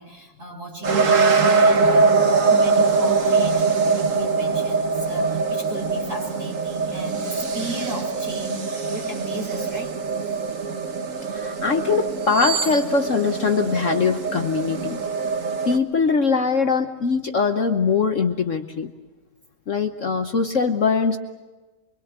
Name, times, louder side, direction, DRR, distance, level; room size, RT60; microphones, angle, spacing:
voice 1, 0.0-9.9, right 1 dB, 35° right, 1 dB, 5.9 m, -35 dB
sound 1, 0.8-15.8, right 4 dB, 50° right, 1.8 m, -22 dB
sound 2, 9.5-11.1 12.1-14.3 14.8-15.0, right 7 dB, 90° right, 3.4 m, -34 dB
voice 2, 11.3-15.0 15.7-18.9 19.7-21.2, left 5 dB, 55° left, 6 dB, 1.3 m, -22 dB
26.0 x 24.0 x 8.0 m, 1.2 s
omnidirectional pair, 1.7 m